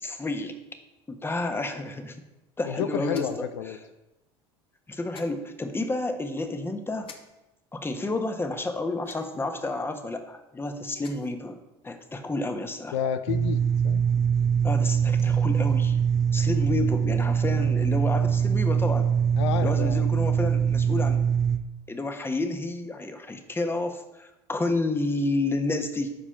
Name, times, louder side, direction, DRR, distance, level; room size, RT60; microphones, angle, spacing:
voice 1, 0.0-0.5 1.1-2.2 2.6-3.5 4.9-7.1 7.7-11.6 11.8-13.0 14.6-16.0 16.3-19.1 19.6-21.2 21.9-26.1, left 2 dB, 15° left, 6 dB, 1.4 m, -30 dB
voice 2, 2.6-3.8 12.9-14.0 19.4-20.0, left 9 dB, 80° left, 10 dB, 0.7 m, -30 dB
sound 1, 3.1-3.5 5.1-5.3 7.0-7.2 9.0-9.5 10.8-11.3, left 4 dB, 40° left, 1.5 m, -46 dB
sound 2, 13.3-21.6, right 7 dB, 25° right, 0.8 m, -23 dB
13.0 x 4.9 x 5.8 m, 1.0 s
hypercardioid pair, 80°, 14 cm